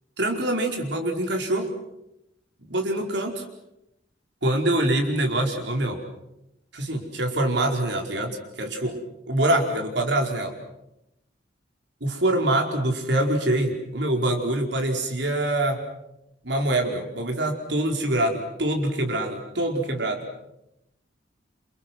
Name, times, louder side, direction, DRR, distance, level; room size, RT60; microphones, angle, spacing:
voice 1, 0.2-1.7 2.7-3.4 4.4-6.0 6.7-9.0 9.3-10.5 12.0-15.8 16.4-20.3, right 1 dB, 65° right, 3 dB, 4.9 m, -25 dB
28.5 x 28.0 x 6.2 m, 0.86 s
head